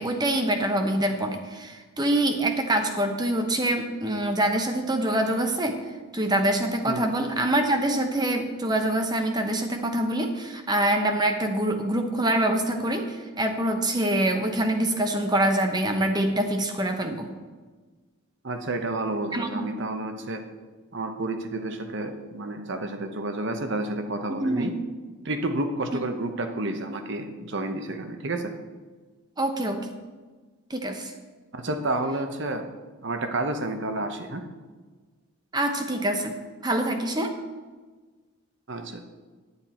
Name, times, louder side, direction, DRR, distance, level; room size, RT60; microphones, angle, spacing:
voice 1, 0.0-5.8 6.1-17.3 19.3-19.7 24.3-24.8 25.9-26.0 29.4-29.9 30.7-31.1 35.5-36.3 36.6-37.3, right 1 dB, 20° right, 5 dB, 0.8 m, -25 dB
voice 2, 18.4-20.4 20.9-24.7 25.2-28.5 31.5-32.6 33.0-34.5 38.7-39.1, right 2 dB, 55° right, 6 dB, 1.0 m, -30 dB
9.8 x 9.7 x 4.4 m, 1.4 s
head